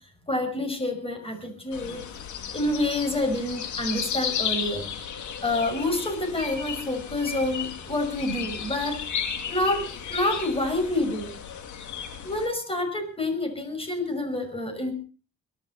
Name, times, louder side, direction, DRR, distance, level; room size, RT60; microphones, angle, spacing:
voice 1, 0.3-2.0 2.5-4.9 5.4-9.0 9.5-11.3 12.2-14.9, left 2 dB, 20° left, 7 dB, 5.9 m, -28 dB
sound 1, 1.7-12.5, left 8 dB, 75° left, 2.3 m, -34 dB
23.0 x 12.0 x 4.2 m, 0.38 s
cardioid pair, 90°, 30 cm